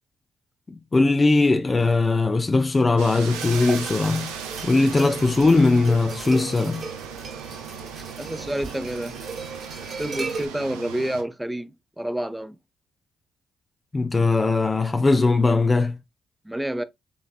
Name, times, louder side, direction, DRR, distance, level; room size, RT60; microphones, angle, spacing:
voice 1, 0.7-4.3 4.6-6.9 13.9-16.0, left 3 dB, 30° left, 0.6 m, -20 dB
sound 1, 3.0-11.2, right 7 dB, 90° right, 0.7 m, -37 dB
sound 2, 3.3-10.5, right 4 dB, 45° right, 1.5 m, -36 dB
voice 2, 8.2-9.2 9.8-12.6 16.4-16.8, right 1 dB, 10° right, 0.6 m, -29 dB
5.3 x 3.3 x 2.4 m
hypercardioid pair, 50°, 0 cm